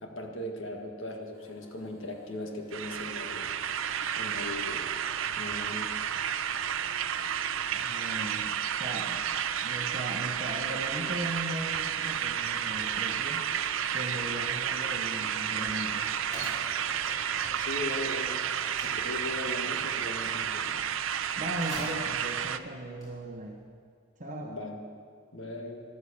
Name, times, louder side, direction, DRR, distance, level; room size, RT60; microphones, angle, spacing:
voice 1, 0.0-3.5 4.2-4.9 5.3-5.9 17.6-18.4 18.8-20.7 24.4-24.8 25.3-25.8, left 1 dB, 65° left, 2 dB, 1.8 m, -38 dB
sound 1, 1.3-15.7, left 1 dB, 15° right, 2.7 m, -56 dB
sound 2, 2.7-22.6, right 9 dB, 70° right, 0.5 m, -31 dB
voice 2, 7.7-9.3 9.6-13.5 13.9-16.1 21.4-23.6 24.2-24.6, right 1 dB, 35° right, 1 dB, 1.1 m, -38 dB
Mechanisms, 13.9-23.6, equal, 15° left, 5.3 m, -47 dB
13.5 x 13.0 x 6.9 m, 2.1 s
head